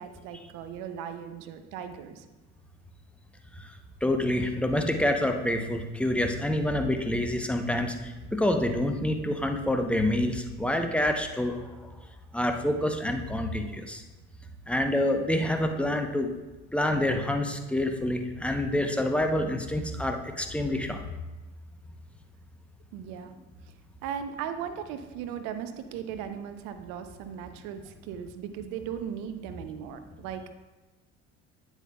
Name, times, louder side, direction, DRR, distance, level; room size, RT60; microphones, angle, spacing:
voice 1, 0.0-2.2 22.9-23.4 24.0-30.5, right 8 dB, 65° right, 8 dB, 0.7 m, -37 dB
voice 2, 4.0-11.7 12.3-14.0 14.7-16.3 16.7-21.0, left 1 dB, 5° left, 5 dB, 0.8 m, -27 dB
9.1 x 8.0 x 2.3 m, 1.2 s
hypercardioid pair, 65°, 35 cm